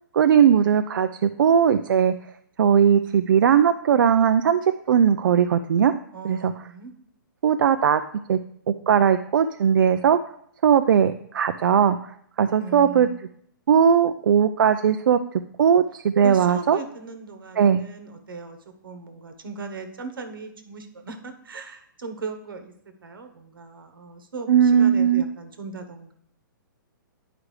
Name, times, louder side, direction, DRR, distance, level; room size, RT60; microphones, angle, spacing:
voice 1, 0.1-2.1 2.6-5.9 6.2-6.5 7.4-8.0 8.3-8.4 8.9-10.2 10.6-12.0 12.4-13.1 13.7-15.2 15.6-16.8 17.6-17.8 24.5-25.2, right 8 dB, 75° right, 9 dB, 0.4 m, -18 dB
voice 2, 6.1-6.9 12.5-13.2 16.2-18.6 18.8-22.7 23.0-26.1, right 4 dB, 90° right, 7 dB, 1.2 m, -38 dB
9.8 x 4.9 x 3.2 m, 0.68 s
hypercardioid pair, 160°, 11 cm